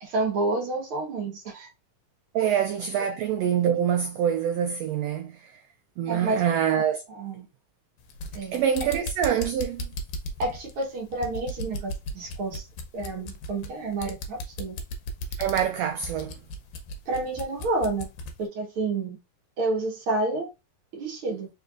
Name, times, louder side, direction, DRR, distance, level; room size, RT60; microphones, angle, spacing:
voice 1, 0.0-1.7 6.1-6.5 7.1-7.5 8.3-8.6 10.4-12.6 12.9-14.8 17.1-18.1 18.4-19.2 19.6-20.5 20.9-21.5, right 2 dB, 55° right, 1.7 m, -29 dB
voice 2, 2.3-5.6 6.0-7.0 8.5-9.9 15.4-16.4, right 9 dB, 90° right, 1.4 m, -25 dB
sound 1, 8.0-18.4, equal, 75° left, 1.9 m, -36 dB
4.6 x 3.3 x 2.4 m
omnidirectional pair, 3.4 m